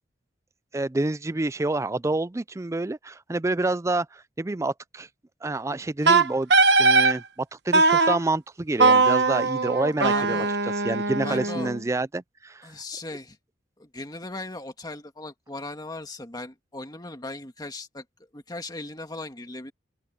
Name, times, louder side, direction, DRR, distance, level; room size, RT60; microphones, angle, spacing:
voice 1, 0.7-5.1 5.4-6.5 6.8-10.5 10.8-12.7, right 2 dB, 15° right, 0.4 m, -28 dB
Wind instrument woodwind instrument, 6.1-7.2 7.7-8.2 8.8-11.8, right 3 dB, 65° right, 1.2 m, -20 dB
voice 2, 10.1-10.6 11.2-11.7 12.6-13.4 13.8-18.0 18.3-19.7, left 2 dB, 20° left, 1.9 m, -38 dB
open air
head